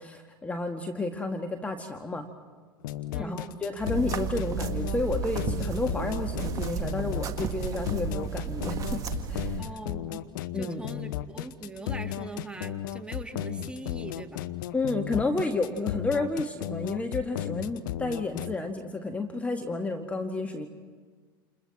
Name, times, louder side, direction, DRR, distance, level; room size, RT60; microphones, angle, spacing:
voice 1, 0.0-2.3 3.2-9.0 9.3-9.6 10.5-10.8 14.7-20.7, left 2 dB, 10° left, 4 dB, 1.8 m, -31 dB
sound 1, 2.8-18.6, left 12 dB, 60° left, 0.9 m, -34 dB
voice 2, 3.1-3.5 9.6-10.3 10.5-14.4, right 2 dB, 10° right, 5 dB, 2.3 m, -41 dB
sound 2, 3.8-9.6, right 7 dB, 30° right, 1.8 m, -33 dB
29.5 x 29.0 x 4.3 m, 1.5 s
figure-of-eight pair, 80°, 12 cm